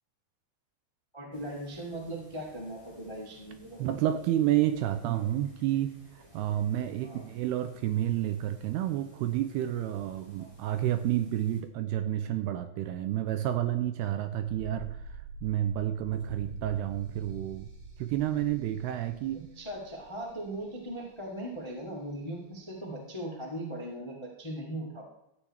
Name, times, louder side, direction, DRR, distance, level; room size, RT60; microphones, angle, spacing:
voice 1, 1.1-4.0 7.0-7.3 10.4-10.5 19.3-25.0, right 1 dB, 25° left, -1 dB, 0.6 m, -39 dB
sound 1, 1.3-11.6, right 1 dB, 10° right, 1.9 m, -59 dB
voice 2, 3.8-5.9 6.3-15.0 15.4-17.7 18.0-19.5, right 12 dB, 80° right, 9 dB, 2.4 m, -30 dB
sound 2, 14.5-21.3 21.6-21.7, right 4 dB, 50° right, 2.4 m, -46 dB
13.5 x 8.3 x 4.3 m, 0.88 s
omnidirectional pair, 5.0 m